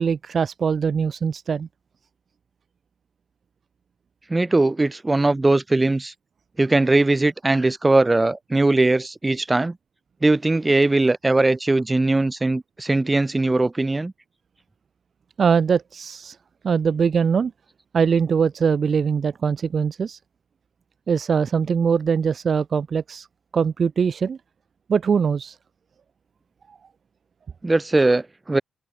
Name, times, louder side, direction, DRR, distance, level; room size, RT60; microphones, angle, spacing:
voice 1, 0.0-1.7 15.4-16.4 16.6-17.5 17.9-20.2 21.1-23.3 23.5-24.4 24.9-25.6, right 6 dB, 50° right, 2.2 m, -22 dB
voice 2, 4.3-6.1 6.6-9.8 10.2-14.1 27.6-28.6, right 2 dB, 20° right, 6.5 m, -20 dB
open air
cardioid pair, 85°, 0 cm